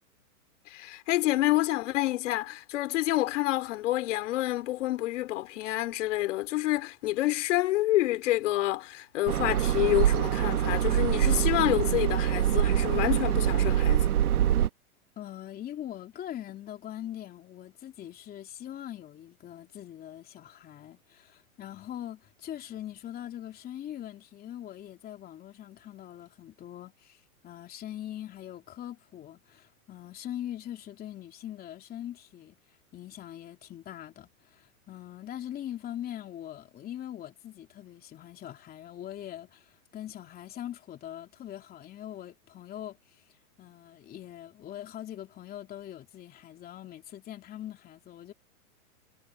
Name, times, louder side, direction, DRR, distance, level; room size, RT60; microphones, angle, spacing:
voice 1, 0.7-14.1, left 16 dB, 55° left, 3.4 m, -28 dB
sound 1, 9.3-14.7, right 11 dB, 85° right, 1.5 m, -25 dB
voice 2, 15.2-48.3, left 11 dB, 20° left, 3.1 m, -42 dB
hypercardioid pair, 140°, 43 cm